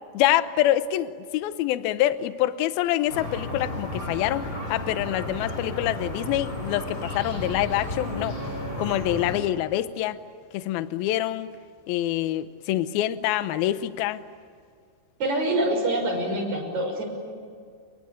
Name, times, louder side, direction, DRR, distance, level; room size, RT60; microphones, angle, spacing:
voice 1, 0.1-4.4 4.7-8.4 8.8-10.2 10.5-11.5 11.9-14.2, left 13 dB, 80° left, 12 dB, 2.2 m, -26 dB
sound 1, 3.1-9.4, left 1 dB, 20° left, 5.2 m, -33 dB
voice 2, 15.2-17.0, right 1 dB, 35° right, 1 dB, 7.0 m, -25 dB
27.5 x 23.5 x 9.1 m, 2.1 s
omnidirectional pair, 5.4 m